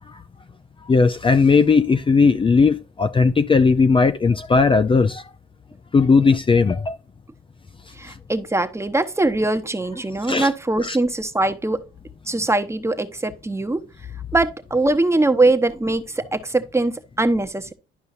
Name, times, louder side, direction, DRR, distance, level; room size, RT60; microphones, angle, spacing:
voice 1, 0.9-5.2 5.9-7.0 10.3-10.5 10.8-11.0, left 4 dB, 25° left, 0.5 m, -17 dB
voice 2, 8.0-11.8 12.3-13.8 14.3-17.7, right 2 dB, 15° right, 0.9 m, -22 dB
11.5 x 5.4 x 2.5 m
cardioid pair, 90°, 20 cm